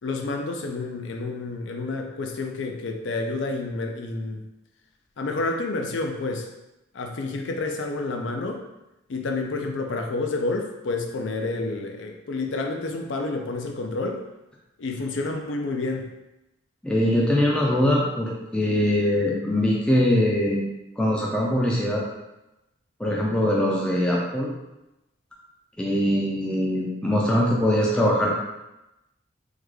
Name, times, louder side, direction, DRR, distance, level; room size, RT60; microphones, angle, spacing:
voice 1, 0.0-4.4 5.2-6.5 6.9-8.6 9.1-14.2 14.8-16.1, left 3 dB, 70° left, 3 dB, 0.4 m, -29 dB
voice 2, 16.8-20.6 21.0-22.0 23.0-24.5 25.8-28.3, left 1 dB, 5° left, -4 dB, 0.4 m, -22 dB
3.6 x 2.2 x 3.2 m, 0.95 s
head